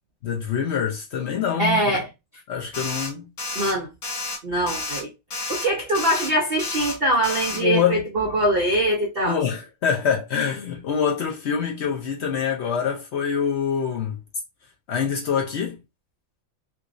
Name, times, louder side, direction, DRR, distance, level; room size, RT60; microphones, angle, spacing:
voice 1, 0.2-2.0 2.5-3.3 7.5-8.3 9.2-14.2 14.9-15.8, left 7 dB, 85° left, 0.5 m, -25 dB
voice 2, 1.6-2.1 3.5-3.9 4.4-5.1 5.5-9.4, right 1 dB, 70° right, 0.5 m, -23 dB
sound 1, 2.7-3.1 3.4-3.7 4.0-4.4 4.7-5.0 5.3-5.7 5.9-6.3 6.6-7.0 7.2-7.6, left 3 dB, 50° left, 1.2 m, -30 dB
3.5 x 2.9 x 2.5 m
omnidirectional pair, 2.0 m